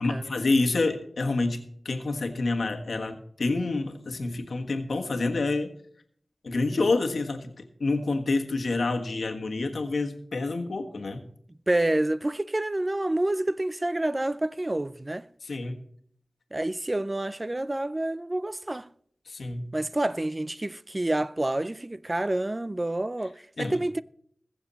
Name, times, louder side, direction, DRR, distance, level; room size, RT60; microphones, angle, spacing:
voice 1, 0.0-5.7 6.4-7.5 7.8-11.2 15.4-15.8 19.3-19.7 23.6-23.8, left 3 dB, 80° left, 1.4 m, -28 dB
voice 2, 11.7-15.3 16.5-18.9 19.7-24.0, right 1 dB, 25° right, 0.4 m, -28 dB
21.0 x 7.0 x 4.1 m
wide cardioid pair, 75°, 0 cm